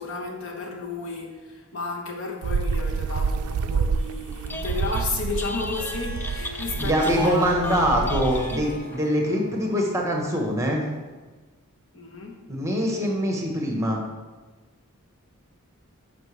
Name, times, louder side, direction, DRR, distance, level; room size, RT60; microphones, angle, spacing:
voice 1, 0.0-7.6 11.9-12.4, left 3 dB, 60° left, 1 dB, 1.1 m, -32 dB
sound 1, 2.4-8.8, right 5 dB, 80° right, 0.3 m, -28 dB
Telephone, 4.3-5.1 5.3-9.0, left 2 dB, 10° left, 0.3 m, -36 dB
Harp, 5.7-11.0, right 1 dB, 80° left, 1.3 m, -41 dB
voice 2, 6.8-10.8 12.5-14.0, equal, 15° right, 0 dB, 1.2 m, -24 dB
10.0 x 5.9 x 3.4 m, 1.2 s
head